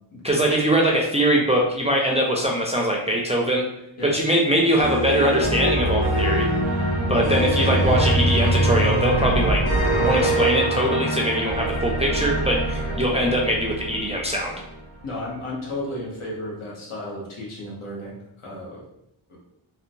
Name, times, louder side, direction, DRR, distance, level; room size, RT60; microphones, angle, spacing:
voice 1, 0.2-3.6 4.0-6.5 7.1-9.6 10.0-14.5, equal, 15° right, -1 dB, 0.3 m, -22 dB
sound 1, 4.8-14.9, right 1 dB, 35° left, 1.2 m, -23 dB
voice 2, 15.0-18.8 19.3-19.4, left 1 dB, 85° left, -4 dB, 1.0 m, -33 dB
2.7 x 2.1 x 2.6 m, 0.80 s
wide cardioid pair, 75°, 49 cm